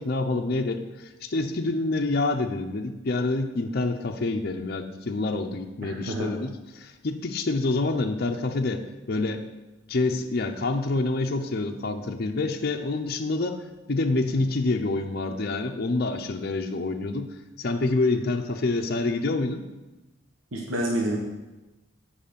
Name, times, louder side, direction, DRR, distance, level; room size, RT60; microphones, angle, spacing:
voice 1, 0.0-9.4 9.9-19.7, left 2 dB, 50° left, 3 dB, 0.6 m, -27 dB
voice 2, 5.8-6.3 20.5-21.2, right 1 dB, 80° right, -2 dB, 1.2 m, -28 dB
7.8 x 4.9 x 6.8 m, 1.1 s
head